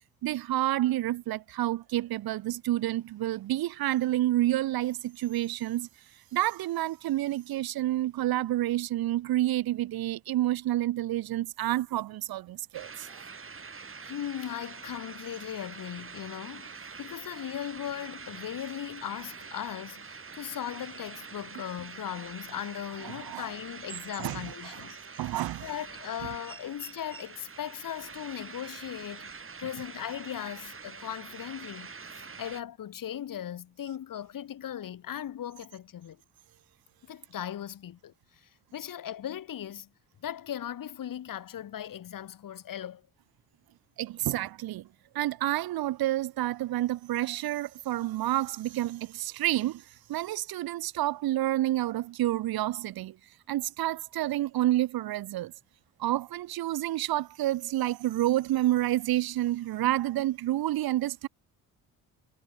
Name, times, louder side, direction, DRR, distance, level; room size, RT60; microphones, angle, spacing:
voice 1, 0.2-5.9 6.3-13.2 23.0-23.5 24.2-24.5 25.2-25.7 44.0-44.9 45.1-49.8 50.1-53.2 53.5-55.5 56.0-61.3, right 15 dB, 75° right, 2.0 m, -29 dB
sound 1, 12.7-32.6, right 5 dB, 35° right, 5.4 m, -45 dB
voice 2, 14.0-25.3 25.6-36.2 37.1-38.1 38.4-39.9 40.2-43.0, left 10 dB, 60° left, 3.1 m, -38 dB
supercardioid pair, 65°, 37 cm